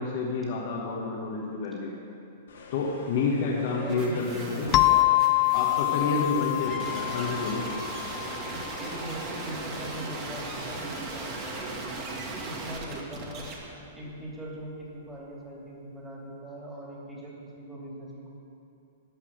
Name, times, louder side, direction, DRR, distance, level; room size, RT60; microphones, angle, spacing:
voice 1, 0.0-2.0 2.7-4.7 5.5-7.7, left 4 dB, 55° left, -3 dB, 1.5 m, -29 dB
sound 1, 2.5-11.8, left 3 dB, 90° left, 2.3 m, -48 dB
voice 2, 3.7-5.3 5.9-6.7 8.4-13.5 13.9-18.3, right 1 dB, 10° right, -4 dB, 2.9 m, -41 dB
sound 2, 3.9-13.5, right 3 dB, 35° right, 2.0 m, -38 dB
sound 3, 4.7-9.1, left 19 dB, 35° left, 0.3 m, -26 dB
13.0 x 6.0 x 8.9 m, 2.6 s
hypercardioid pair, 135°, 0 cm